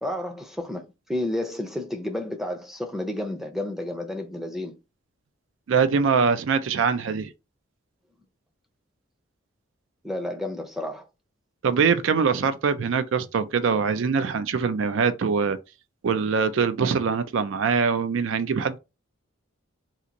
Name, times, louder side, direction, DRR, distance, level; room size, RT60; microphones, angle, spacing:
voice 1, 0.0-4.8 10.0-11.1, left 1 dB, ahead, 0.5 m, -31 dB
voice 2, 5.7-7.3 11.6-15.6 16.0-18.8, right 5 dB, 70° right, 0.4 m, -23 dB
2.8 x 2.5 x 3.8 m
head